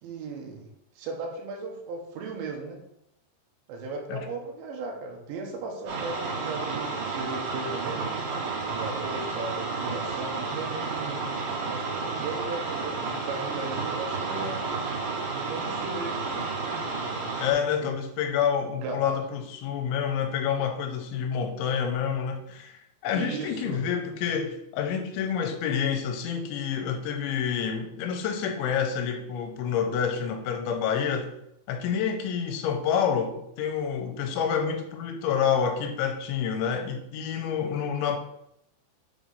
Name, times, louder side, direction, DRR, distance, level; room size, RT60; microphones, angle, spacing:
voice 1, 0.0-0.7 1.0-2.8 3.7-8.0 8.6-11.2 11.7-14.6 15.3-16.2 17.5-17.9 18.8-19.2 23.1-23.8, right 3 dB, 80° right, 1 dB, 3.3 m, -36 dB
sound 1, 5.9-17.5, right 4 dB, 60° right, 3.5 m, -31 dB
voice 2, 17.4-31.3 31.7-38.2, left 7 dB, 85° left, 5 dB, 3.0 m, -28 dB
7.8 x 3.1 x 5.4 m, 0.77 s
omnidirectional pair, 5.3 m